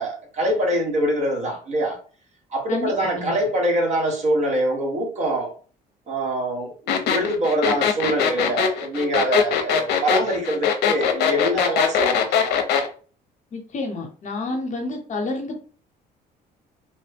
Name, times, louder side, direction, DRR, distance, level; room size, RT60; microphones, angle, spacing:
voice 1, 0.0-2.0 2.5-5.5 6.1-12.4, right 1 dB, 45° right, 0 dB, 1.2 m, -24 dB
voice 2, 2.7-3.3 13.5-15.7, left 2 dB, 45° left, 3 dB, 0.9 m, -29 dB
sound 1, 6.9-12.9, left 7 dB, 75° left, 0.6 m, -21 dB
3.0 x 2.1 x 3.4 m, 0.40 s
cardioid pair, 110°, 17 cm